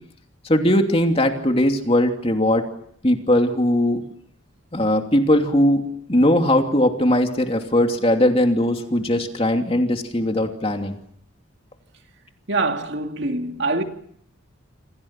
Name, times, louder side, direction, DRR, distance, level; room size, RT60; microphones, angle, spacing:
voice 1, 0.4-2.7 3.0-4.0 4.7-5.8 6.1-11.0, left 1 dB, 30° left, 2.8 m, -19 dB
voice 2, 12.5-13.8, right 2 dB, 55° right, 2.5 m, -24 dB
28.0 x 27.0 x 6.0 m
head